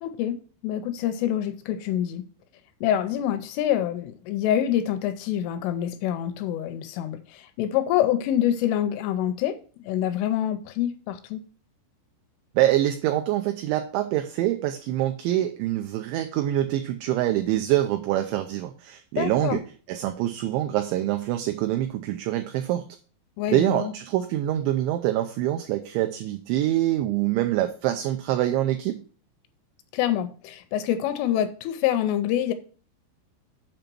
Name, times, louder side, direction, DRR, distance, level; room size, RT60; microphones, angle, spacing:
voice 1, 0.0-2.3 2.8-9.6 9.8-11.4 19.2-19.6 23.4-23.9 29.9-32.5, left 11 dB, 85° left, 2.9 m, -26 dB
voice 2, 12.6-19.6 19.9-22.8 23.5-29.0, right 13 dB, 90° right, 2.6 m, -25 dB
7.8 x 5.3 x 6.0 m
omnidirectional pair, 6.0 m